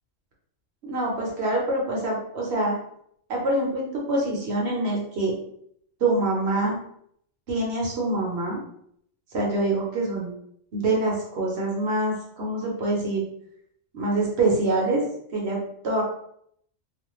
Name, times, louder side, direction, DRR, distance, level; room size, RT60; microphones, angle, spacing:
voice 1, 0.8-2.8 3.3-5.4 6.0-6.8 7.5-8.6 9.3-10.3 10.7-13.2 13.9-15.0 15.3-16.0, right 2 dB, 60° right, -3 dB, 0.9 m, -25 dB
2.5 x 2.2 x 3.0 m, 0.69 s
omnidirectional pair, 1.3 m